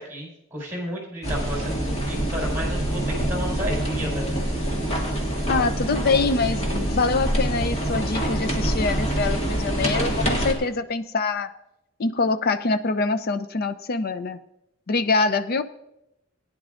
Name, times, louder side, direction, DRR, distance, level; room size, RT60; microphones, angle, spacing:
voice 1, 0.0-4.3, equal, 10° right, -3 dB, 4.5 m, -32 dB
sound 1, 1.2-10.5, right 1 dB, 35° left, 2.0 m, -25 dB
voice 2, 5.5-11.5 12.0-14.4 14.9-15.6, left 4 dB, 50° left, 10 dB, 0.5 m, -24 dB
17.5 x 10.0 x 2.5 m, 0.84 s
head